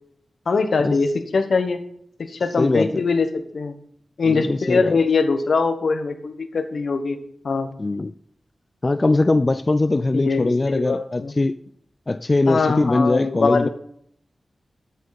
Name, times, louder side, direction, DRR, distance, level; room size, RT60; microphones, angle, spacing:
voice 1, 0.5-1.8 2.3-3.3 3.5-3.7 4.2-7.2 7.4-7.7 10.1-11.3 12.4-13.7, left 4 dB, 75° left, 1.2 m, -22 dB
voice 2, 2.6-3.0 4.2-5.0 7.8-8.1 8.8-11.6 12.1-13.7, left 2 dB, 35° left, 0.4 m, -21 dB
13.0 x 8.2 x 4.1 m
wide cardioid pair, 70°, 0 cm